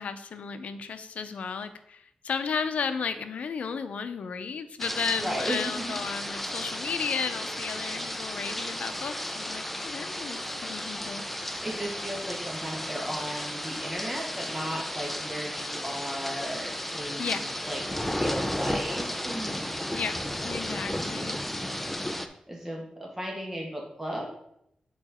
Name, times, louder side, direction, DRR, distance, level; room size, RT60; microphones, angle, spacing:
voice 1, 0.0-11.2 17.2-17.4 19.9-20.2 20.4-21.4, left 6 dB, 90° left, 10 dB, 0.6 m, -34 dB
sound 1, 4.8-22.3, left 1 dB, 5° left, 0.5 m, -34 dB
voice 2, 5.2-6.0 11.6-19.6 22.5-24.3, equal, 10° right, -1 dB, 2.0 m, -35 dB
6.9 x 4.9 x 4.3 m, 0.75 s
wide cardioid pair, 110°, 2 cm